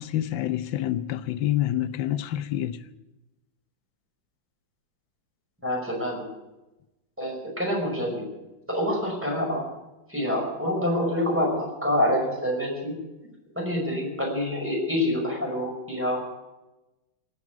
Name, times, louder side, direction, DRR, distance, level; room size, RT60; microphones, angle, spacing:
voice 1, 0.0-2.8, left 12 dB, 85° left, 1.5 m, -27 dB
voice 2, 5.6-6.3 7.2-8.3 8.7-9.6 10.1-13.0 13.6-16.3, left 1 dB, 5° right, 5.5 m, -26 dB
18.0 x 8.6 x 9.3 m
omnidirectional pair, 2.0 m